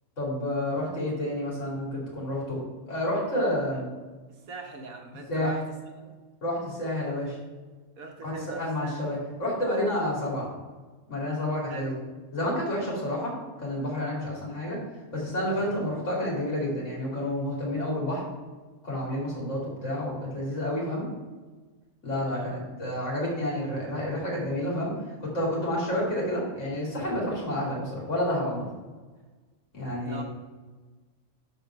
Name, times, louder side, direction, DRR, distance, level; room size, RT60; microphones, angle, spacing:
voice 1, 0.2-2.6 2.9-3.9 5.3-5.5 6.4-7.4 8.2-8.3 8.6-10.5 11.1-12.0 12.3-13.3 13.6-14.8 15.1-18.2 18.8-21.1 22.0-24.9 25.2-28.7 29.7-30.2, left 1 dB, 55° left, -4 dB, 2.9 m, -29 dB
voice 2, 4.3-6.2 8.0-9.1 11.7-12.0 15.5-15.8 22.3-22.6 30.1-30.2, right 3 dB, 75° right, 3 dB, 1.5 m, -41 dB
6.4 x 5.0 x 5.7 m, 1.3 s
omnidirectional pair, 1.5 m